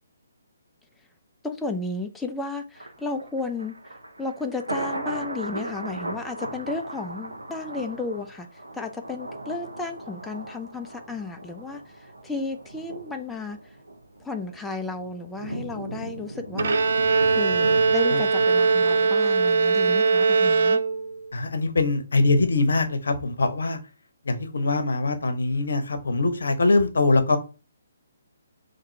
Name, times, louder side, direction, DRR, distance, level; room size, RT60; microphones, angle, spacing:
voice 1, 1.4-13.8 14.2-17.0 17.3-20.8, left 3 dB, 5° left, 0.4 m, -33 dB
Thunder, 2.8-19.9 20.2-20.3, right 1 dB, 85° right, 0.8 m, -38 dB
Bowed string instrument, 16.6-21.3, right 4 dB, 60° right, 0.4 m, -21 dB
voice 2, 21.3-23.8 24.3-27.4, left 3 dB, 70° left, 0.7 m, -23 dB
3.6 x 2.6 x 4.2 m
figure-of-eight pair, 135°, 0 cm